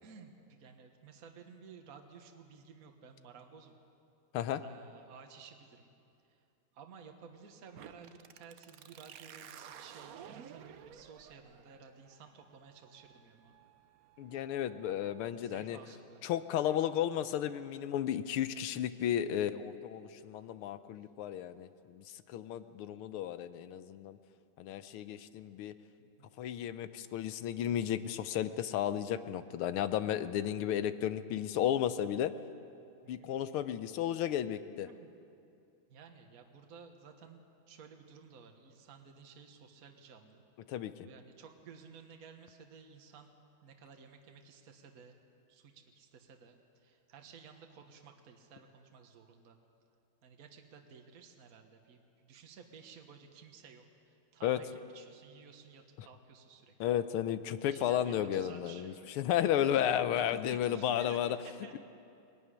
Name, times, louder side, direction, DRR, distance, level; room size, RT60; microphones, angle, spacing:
voice 1, 0.0-3.8 4.6-5.9 6.3-6.4 6.7-13.5 15.3-16.2 26.0-26.3 33.0-33.3 34.8-35.1 35.9-40.4 41.0-45.2 45.5-49.6 50.2-54.7 54.9-57.0 57.7-59.6 60.1-61.8, right 6 dB, 45° right, 4 dB, 1.6 m, -55 dB
sound 1, 7.7-15.3, right 9 dB, 70° right, 0.8 m, -54 dB
voice 2, 14.2-15.8 16.2-24.2 24.6-25.7 26.4-32.3 33.1-34.9 40.7-40.9 54.4-54.6 56.0-56.1 56.8-61.4, left 10 dB, 85° left, 12 dB, 1.6 m, -33 dB
21.0 x 15.5 x 9.9 m, 2.5 s
omnidirectional pair, 2.4 m